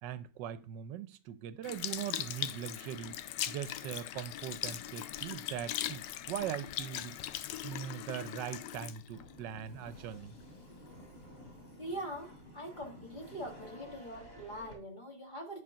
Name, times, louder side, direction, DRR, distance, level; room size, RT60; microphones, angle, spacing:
voice 1, 0.0-3.2 3.5-7.2 7.6-10.4, right 10 dB, 80° right, 1.3 m, -41 dB
Sink (filling or washing) / Liquid, 1.6-10.2 10.8-11.0, left 12 dB, 80° left, 1.3 m, -40 dB
sound 1, 9.1-14.7, equal, 50° left, 3.3 m, -53 dB
voice 2, 11.8-15.6, right 1 dB, 25° left, 1.7 m, -43 dB
10.0 x 4.0 x 5.7 m
omnidirectional pair, 1.9 m